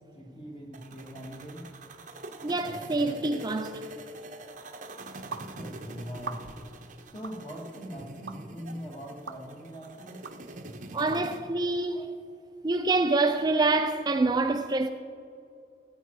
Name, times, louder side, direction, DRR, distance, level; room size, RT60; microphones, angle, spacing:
voice 1, 0.1-1.6 5.5-6.4 7.1-10.2, equal, 35° left, 2.4 m, -41 dB
sound 1, 0.7-11.4, right 1 dB, 45° right, 0.8 m, -44 dB
voice 2, 2.4-3.8 10.9-12.2 12.6-14.9, right 3 dB, 25° right, 0.4 m, -26 dB
sound 2, 5.3-5.5 6.2-6.7 7.2-7.4 8.3-8.4 9.3-9.4 10.2-10.4 11.1-11.2, right 5 dB, 75° right, 0.7 m, -39 dB
17.0 x 9.1 x 4.7 m
head